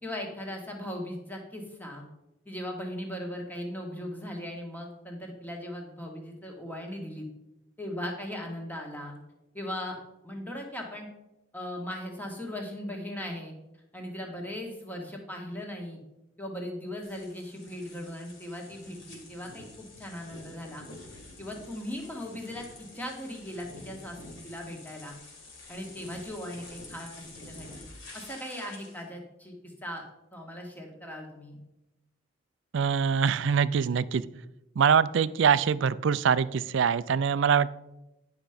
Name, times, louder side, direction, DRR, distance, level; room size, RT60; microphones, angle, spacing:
voice 1, 0.0-2.0 2.4-7.3 7.8-9.1 9.5-9.9 10.2-11.1 11.5-13.5 13.9-16.0 16.4-20.8 21.1-25.1 25.7-27.7 28.1-30.0 30.3-31.6, left 1 dB, 10° left, 1 dB, 1.6 m, -38 dB
sound 1, 17.0-29.0, left 2 dB, 60° left, 3.2 m, -48 dB
voice 2, 32.7-34.2 34.8-37.7, right 7 dB, 60° right, 17 dB, 0.4 m, -24 dB
10.5 x 5.8 x 5.0 m, 0.93 s
head